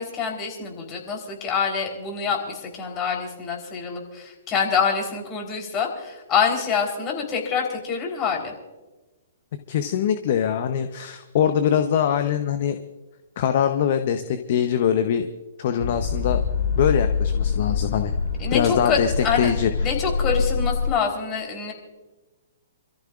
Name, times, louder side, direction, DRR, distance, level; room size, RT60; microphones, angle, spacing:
voice 1, 0.0-8.5 18.4-19.5 19.8-21.7, left 6 dB, 25° left, 1 dB, 3.7 m, -26 dB
voice 2, 9.7-12.8 13.4-15.3 15.6-16.4 16.8-18.1 18.5-19.1 19.4-19.7, left 8 dB, 50° left, 8 dB, 0.9 m, -22 dB
sound 1, 15.8-20.9, left 5 dB, 70° left, 5.4 m, -25 dB
28.0 x 14.0 x 2.5 m, 1.2 s
figure-of-eight pair, 120°, 0 cm